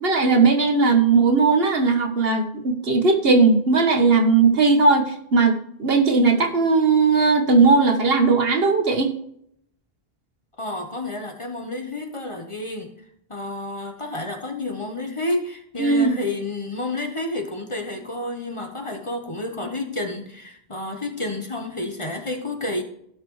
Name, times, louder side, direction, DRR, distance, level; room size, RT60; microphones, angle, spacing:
voice 1, 0.0-9.1 15.8-16.1, right 4 dB, 65° right, 5 dB, 1.5 m, -18 dB
voice 2, 10.6-12.9 13.3-22.8, left 2 dB, 30° left, 4 dB, 1.2 m, -30 dB
16.5 x 5.9 x 3.2 m, 0.70 s
omnidirectional pair, 1.1 m